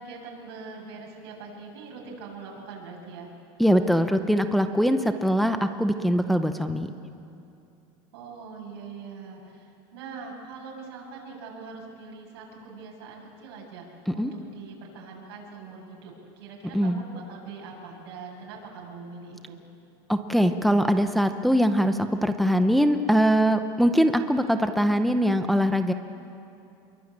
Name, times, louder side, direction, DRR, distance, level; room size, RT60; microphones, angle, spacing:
voice 1, 0.0-3.3 8.1-13.9 14.1-19.6, right 4 dB, 85° right, -2 dB, 7.9 m, -42 dB
voice 2, 3.6-6.9 14.1-14.3 16.7-17.0 20.1-25.9, equal, ahead, 7 dB, 0.7 m, -22 dB
28.0 x 23.0 x 8.8 m, 2.7 s
supercardioid pair, 170°, 13 cm